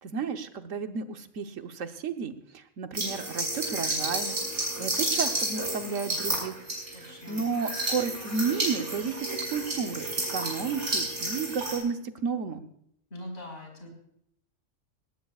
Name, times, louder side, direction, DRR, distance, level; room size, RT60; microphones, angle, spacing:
voice 1, 0.0-4.4 4.8-6.6 6.9-12.6, right 5 dB, 85° right, 7 dB, 1.4 m, -32 dB
sound 1, 2.9-11.8, right 2 dB, 70° right, 6.3 m, -31 dB
voice 2, 6.9-7.4 13.1-13.9, left 1 dB, 55° left, 1 dB, 5.0 m, -42 dB
19.0 x 18.5 x 2.4 m, 0.71 s
omnidirectional pair, 1.3 m